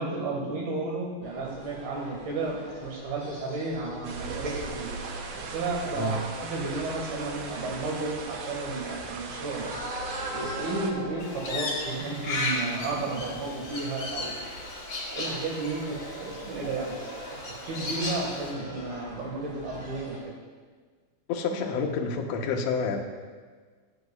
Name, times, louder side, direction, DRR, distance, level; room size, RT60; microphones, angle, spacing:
voice 1, 0.0-4.9 5.5-9.7 10.3-14.7 15.1-17.4 17.7-20.2, right 3 dB, 90° right, -1 dB, 3.7 m, -33 dB
sound 1, 1.2-20.2, equal, 20° right, 1.5 m, -43 dB
sound 2, 4.0-10.9, right 4 dB, 75° right, 1.8 m, -38 dB
Crow, 11.2-18.5, left 2 dB, 40° left, 1.4 m, -35 dB
voice 2, 21.3-23.0, left 4 dB, 85° left, 2 dB, 1.5 m, -28 dB
18.0 x 7.9 x 2.4 m, 1.5 s
omnidirectional pair, 4.2 m